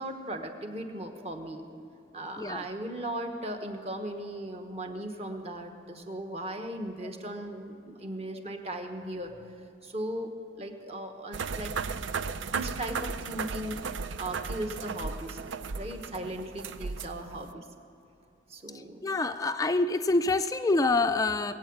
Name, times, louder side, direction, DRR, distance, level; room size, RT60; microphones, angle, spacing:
voice 1, 0.0-1.6 2.1-9.3 9.8-10.3 10.6-11.7 12.4-17.7 18.5-19.0, right 1 dB, 30° right, 4 dB, 1.1 m, -37 dB
sound 1, 11.3-17.5, right 5 dB, 75° right, 0.5 m, -35 dB
voice 2, 19.0-21.5, left 3 dB, 20° left, 10 dB, 0.3 m, -26 dB
21.0 x 8.7 x 7.2 m, 2.7 s
head